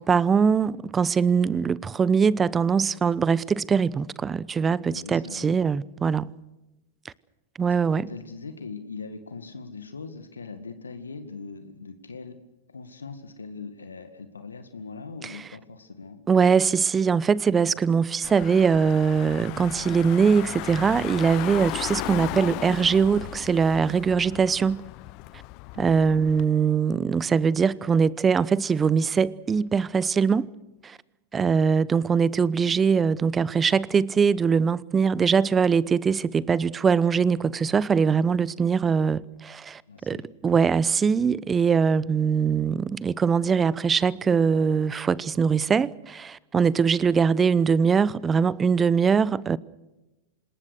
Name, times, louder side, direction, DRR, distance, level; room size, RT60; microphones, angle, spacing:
voice 1, 0.0-6.3 7.6-8.1 16.3-24.8 25.8-30.5 30.8-31.0 31.3-40.2 40.4-49.6, right 6 dB, 20° right, 0.8 m, -22 dB
voice 2, 4.8-5.5 7.7-12.4 12.7-16.2 25.7-26.1 39.9-40.3, left 4 dB, 85° left, 2.0 m, -40 dB
Car / Engine, 18.2-26.4, left 20 dB, 45° left, 0.7 m, -36 dB
26.5 x 20.5 x 6.5 m
hypercardioid pair, 100°, 0 cm